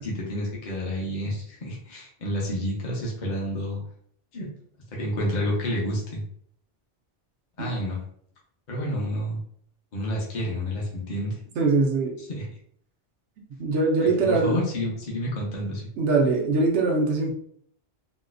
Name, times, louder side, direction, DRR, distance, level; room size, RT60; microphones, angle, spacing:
voice 1, 0.0-3.8 4.3-4.5 4.9-6.2 7.6-8.0 8.7-9.4 9.9-11.3 12.2-12.5 14.0-15.8, equal, 45° left, -3 dB, 0.9 m, -29 dB
voice 2, 11.6-12.1 13.6-14.6 16.0-17.3, right 3 dB, 90° right, -1 dB, 1.0 m, -22 dB
4.0 x 2.1 x 2.5 m, 0.65 s
omnidirectional pair, 1.1 m